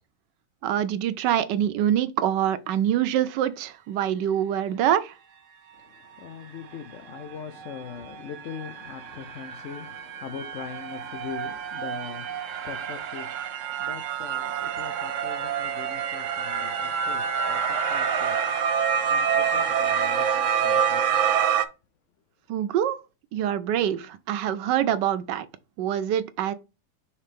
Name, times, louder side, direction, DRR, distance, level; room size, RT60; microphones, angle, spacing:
voice 1, 0.6-5.1 22.5-23.0 23.3-25.5 25.8-26.5, right 10 dB, 90° right, 1.3 m, -25 dB
voice 2, 5.7-18.6 19.1-21.3, left 7 dB, 65° left, 0.7 m, -41 dB
sound 1, 7.1-7.2 7.6-21.6, right 7 dB, 60° right, 0.8 m, -27 dB
5.6 x 3.2 x 5.2 m
omnidirectional pair, 1.8 m